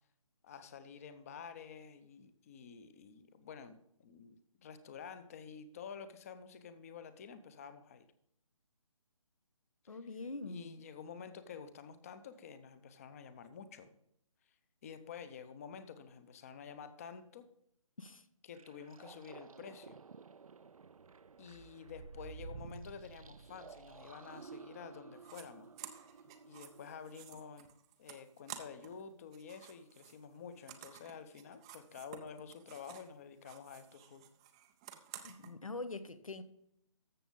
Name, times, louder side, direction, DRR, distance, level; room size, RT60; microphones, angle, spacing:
voice 1, 0.4-8.1 9.9-10.0 10.5-13.9 14.8-17.5 18.4-20.0 21.4-25.7 26.4-27.7 28.0-34.3, left 6 dB, 25° left, 0.8 m, -50 dB
voice 2, 9.9-10.8 18.0-18.2 35.2-36.4, left 3 dB, 75° left, 1.1 m, -44 dB
sound 1, 18.5-27.1, right 5 dB, 80° right, 0.4 m, -53 dB
sound 2, 25.2-25.4 25.8-29.0 29.3-33.1 33.4-35.5, right 11 dB, 10° right, 0.4 m, -53 dB
13.5 x 7.1 x 3.8 m
figure-of-eight pair, 145°, 18 cm